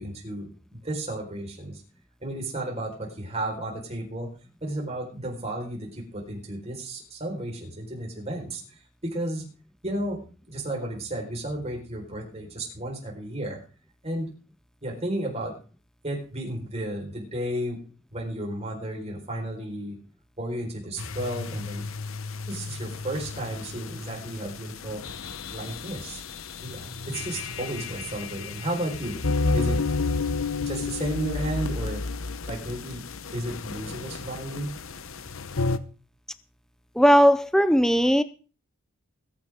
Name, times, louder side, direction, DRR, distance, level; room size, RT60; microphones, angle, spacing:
voice 1, 0.0-1.8 2.2-4.3 4.6-9.5 9.8-10.2 10.5-13.6 14.0-14.3 14.8-15.5 16.0-17.8 18.1-20.0 20.4-21.8 22.5-25.0 25.5-26.2 26.6-29.2 29.5-29.8 30.6-32.0 32.5-33.0 33.3-34.7, right 1 dB, 30° right, -1 dB, 4.5 m, -33 dB
sound 1, 21.0-35.8, left 3 dB, 80° left, 0.9 m, -32 dB
voice 2, 37.0-38.2, equal, 5° left, 12 dB, 0.5 m, -18 dB
21.5 x 9.4 x 3.6 m, 0.37 s
head